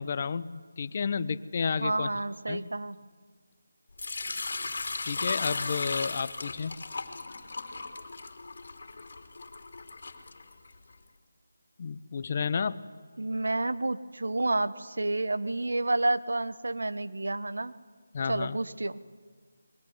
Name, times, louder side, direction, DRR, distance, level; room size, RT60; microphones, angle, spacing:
voice 1, 0.0-2.1 2.5-2.7 5.0-6.8 11.8-12.8 18.1-18.6, left 5 dB, 35° left, 15 dB, 0.9 m, -31 dB
voice 2, 1.8-3.0 13.2-17.7 18.3-19.0, right 2 dB, 75° right, 12 dB, 1.3 m, -30 dB
Sink (filling or washing) / Liquid, 4.0-10.9, left 3 dB, 55° left, 3.0 m, -36 dB
23.5 x 23.0 x 9.7 m, 1.5 s
figure-of-eight pair, 165°, 0 cm